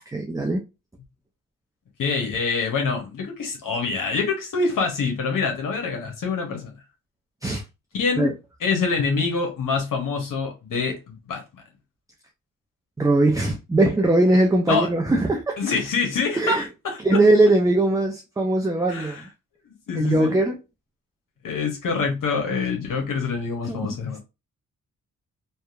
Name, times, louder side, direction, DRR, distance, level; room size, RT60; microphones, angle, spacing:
voice 1, 0.1-0.6 7.4-7.6 8.2-8.3 13.0-15.6 16.3-16.6 17.0-19.2 19.9-20.6 23.7-23.8, right 2 dB, 10° right, 0.5 m, -20 dB
voice 2, 2.0-6.7 7.9-8.3 8.6-11.6 14.7-14.9 15.6-17.0 18.9-19.2 19.9-20.4 21.4-24.2, left 4 dB, 70° left, 0.9 m, -25 dB
2.8 x 2.2 x 2.4 m
cardioid pair, 65°, 34 cm